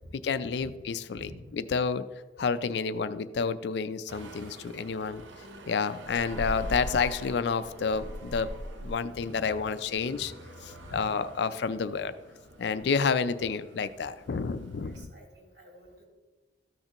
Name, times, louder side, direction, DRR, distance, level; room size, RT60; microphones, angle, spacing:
voice 1, 0.1-2.1 2.4-5.2 5.7-8.5 8.8-10.3 10.7-12.1 12.6-15.1, left 5 dB, 65° left, 13 dB, 0.4 m, -30 dB
voice 2, 1.1-1.5 5.2-5.3 9.2-9.4 10.7-11.1 14.8-16.1, equal, 65° right, -2 dB, 3.1 m, -48 dB
sound 1, 4.1-15.0, right 1 dB, 85° right, 0.8 m, -43 dB
13.5 x 6.6 x 2.9 m, 1.2 s
head